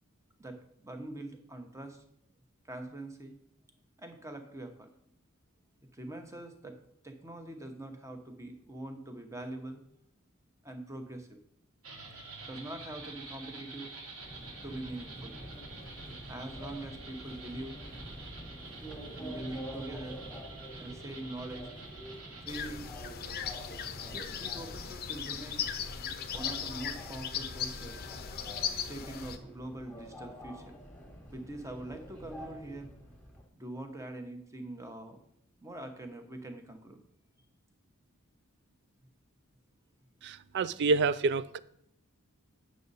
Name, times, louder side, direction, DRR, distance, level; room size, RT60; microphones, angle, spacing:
voice 1, 0.4-2.0 2.7-3.4 4.0-4.9 5.9-6.8 7.0-9.8 10.6-11.4 12.1-13.9 14.6-15.4 16.3-17.8 19.1-20.2 20.8-21.7 22.4-22.9 24.1-25.6 26.3-28.0 28.8-30.7 31.3-32.9 33.5-35.2 35.6-37.0, right 1 dB, 15° right, 0.9 m, -43 dB
sound 1, 11.8-22.5, right 3 dB, 80° right, 2.1 m, -48 dB
Subway metro underground, 14.2-33.4, equal, 5° left, 1.3 m, -47 dB
sound 2, 22.5-29.4, left 7 dB, 45° left, 0.6 m, -37 dB
voice 2, 40.2-41.6, right 4 dB, 55° right, 0.4 m, -28 dB
8.3 x 6.3 x 4.0 m
head